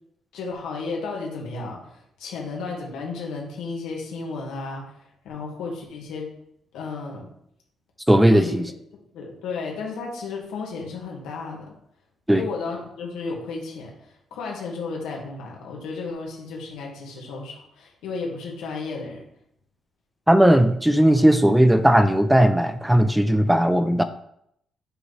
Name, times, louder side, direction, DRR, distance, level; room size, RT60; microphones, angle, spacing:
voice 1, 0.3-4.9 5.2-6.3 6.7-7.3 8.3-8.6 8.9-11.7 12.3-19.2, left 4 dB, 90° left, -1 dB, 1.9 m, -33 dB
voice 2, 8.1-8.6 12.3-12.5 20.3-24.0, right 1 dB, 5° right, 10 dB, 0.4 m, -17 dB
7.8 x 3.1 x 4.0 m, 0.73 s
cardioid pair, 90°, 0 cm